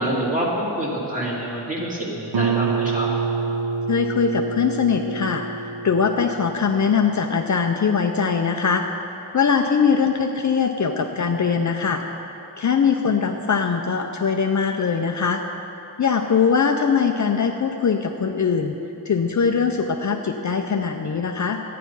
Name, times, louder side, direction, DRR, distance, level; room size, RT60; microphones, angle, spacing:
voice 1, 0.0-3.1, right 1 dB, 20° right, -5 dB, 2.5 m, -26 dB
Guitar, 2.3-7.7, right 5 dB, 70° right, 0.9 m, -27 dB
voice 2, 3.9-8.8 9.3-12.0 12.6-15.4 16.0-18.8 19.1-21.6, left 6 dB, 50° left, 4 dB, 0.6 m, -21 dB
12.5 x 9.4 x 5.5 m, 3.0 s
wide cardioid pair, 125°, 39 cm